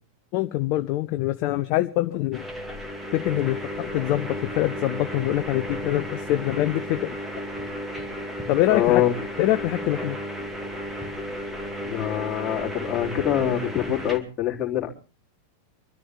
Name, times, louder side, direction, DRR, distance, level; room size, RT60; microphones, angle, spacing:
voice 1, 0.3-2.4 3.1-7.2 8.5-9.0 9.4-10.2, left 15 dB, 45° left, 11 dB, 0.7 m, -24 dB
sound 1, 2.3-14.2, equal, 10° right, 2.6 m, -33 dB
voice 2, 8.7-9.2 11.8-14.9, left 12 dB, 25° left, 0 dB, 3.3 m, -24 dB
25.0 x 13.0 x 3.6 m, 0.36 s
figure-of-eight pair, 90°, 0 cm